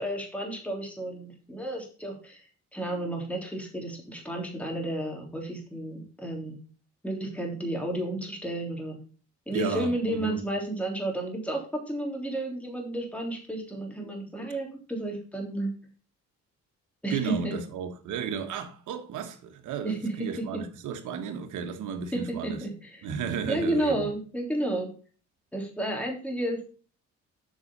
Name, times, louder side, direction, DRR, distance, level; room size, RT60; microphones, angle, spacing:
voice 1, 0.0-2.4 2.7-6.6 7.0-9.0 9.5-15.7 17.0-17.6 19.8-20.6 22.1-23.0 23.5-24.9 25.5-26.7, right 1 dB, 5° left, 3.3 m, -32 dB
voice 2, 9.5-10.4 17.1-22.6 23.0-24.1, right 7 dB, 80° right, 1.5 m, -33 dB
8.0 x 5.6 x 5.4 m
cardioid pair, 90°, 30 cm